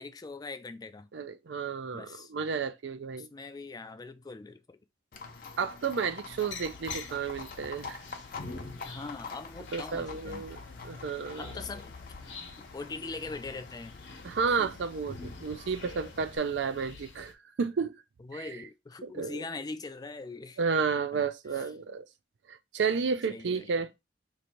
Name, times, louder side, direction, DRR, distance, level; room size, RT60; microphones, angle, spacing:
voice 1, 0.0-1.1 1.9-2.3 3.2-4.8 8.8-10.5 11.4-11.9 12.6-13.9 14.6-14.7 18.2-20.6 21.6-21.7 23.3-23.7, left 3 dB, 20° left, 0.3 m, -41 dB
voice 2, 1.1-3.3 5.6-8.0 9.7-11.5 14.2-17.3 17.6-18.0 18.3-18.5 19.0-19.4 20.6-22.1 22.5-23.9, right 5 dB, 65° right, 0.4 m, -32 dB
Livestock farm animals working animals, 5.1-16.4, left 5 dB, 50° left, 0.6 m, -46 dB
sound 1, 6.3-17.3, left 3 dB, 70° left, 0.9 m, -46 dB
3.0 x 2.6 x 4.3 m
head